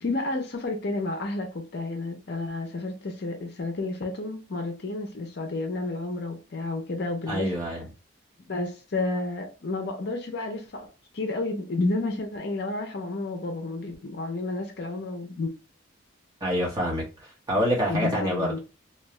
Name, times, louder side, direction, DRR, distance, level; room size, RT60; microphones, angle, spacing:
voice 1, 0.0-7.5 8.5-10.9 11.1-15.5 17.9-18.6, left 2 dB, 50° left, 0.5 m, -31 dB
voice 2, 7.3-7.9 16.4-17.0 17.5-18.6, equal, 20° right, 1.1 m, -26 dB
2.7 x 2.3 x 3.0 m
head